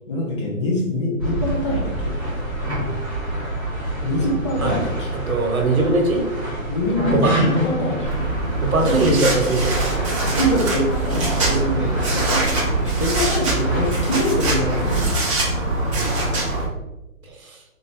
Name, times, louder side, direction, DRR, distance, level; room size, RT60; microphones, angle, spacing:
voice 1, 0.1-2.1 4.0-5.1 6.7-8.1 8.8-9.2 10.2-15.1, left 1 dB, 20° left, -3 dB, 0.6 m, -24 dB
sound 1, 1.2-15.1, right 1 dB, 5° right, 1.5 m, -26 dB
voice 2, 5.3-6.2 7.1-7.4 8.6-10.0 15.9-16.1 17.4-17.6, right 2 dB, 80° right, 3 dB, 1.1 m, -21 dB
sound 2, 8.0-16.6, right 2 dB, 20° right, 0.7 m, -23 dB
3.7 x 2.8 x 3.4 m, 0.96 s
figure-of-eight pair, 145°, 42 cm